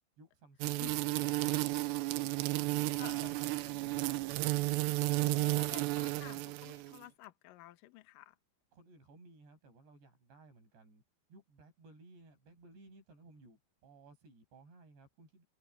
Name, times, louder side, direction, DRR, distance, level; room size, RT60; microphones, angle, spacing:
voice 1, 0.2-2.1 2.4-4.2 8.7-11.0 11.3-15.4, right 3 dB, 55° right, 9.7 m, -58 dB
sound 1, 0.6-7.0, right 20 dB, 85° right, 2.5 m, -33 dB
voice 2, 3.0-3.3 5.2-8.3, left 16 dB, 90° left, 1.9 m, -51 dB
open air
omnidirectional pair, 5.9 m